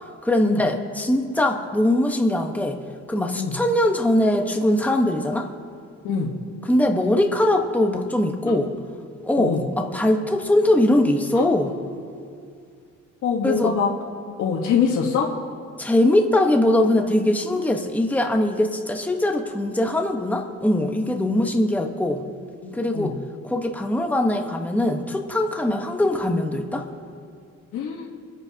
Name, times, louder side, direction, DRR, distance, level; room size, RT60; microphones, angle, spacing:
voice 1, 0.2-2.8 3.1-5.5 6.7-8.7 9.2-11.7 13.4-13.7 15.8-22.2 22.7-23.1 23.4-26.9, left 1 dB, 5° left, 3 dB, 1.1 m, -21 dB
voice 2, 13.2-13.9 14.4-15.3 22.6-23.1 27.7-28.1, left 6 dB, 75° left, -1 dB, 1.3 m, -24 dB
25.0 x 8.8 x 2.8 m, 2.3 s
cardioid pair, 90°, 30 cm